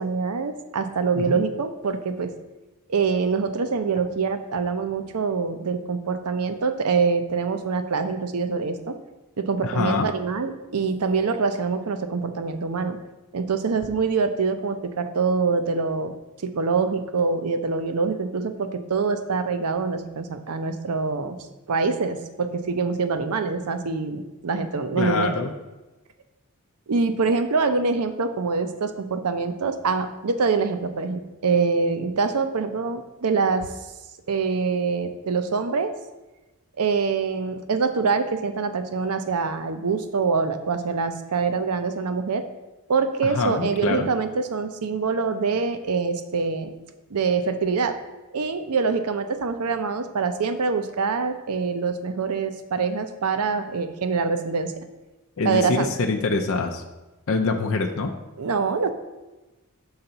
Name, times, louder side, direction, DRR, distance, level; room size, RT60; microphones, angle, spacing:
voice 1, 0.0-2.3 2.9-9.0 9.4-13.0 13.3-16.1 16.4-21.4 21.7-25.3 26.9-33.7 34.3-35.9 36.8-42.4 42.9-46.7 47.1-48.0 48.3-54.8 55.4-55.9 58.4-58.9, right 4 dB, 90° right, 9 dB, 0.6 m, -25 dB
voice 2, 9.6-10.1 25.0-25.5 43.2-44.1 55.4-56.8 57.3-58.1, left 3 dB, 60° left, 3 dB, 0.5 m, -25 dB
5.7 x 3.9 x 5.6 m, 1.1 s
head